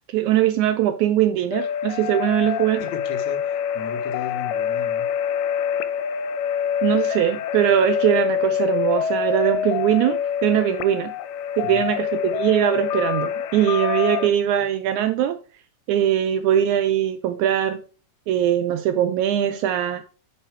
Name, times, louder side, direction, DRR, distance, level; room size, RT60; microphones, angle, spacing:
voice 1, 0.1-2.8 6.8-11.1 11.6-15.4 15.9-17.8 18.3-20.0, right 11 dB, 80° right, 1.7 m, -21 dB
sound 1, 1.5-14.3, left 8 dB, 85° left, 2.3 m, -26 dB
voice 2, 2.8-5.1 11.6-11.9, left 7 dB, 65° left, 2.0 m, -35 dB
8.9 x 4.4 x 4.5 m
omnidirectional pair, 3.8 m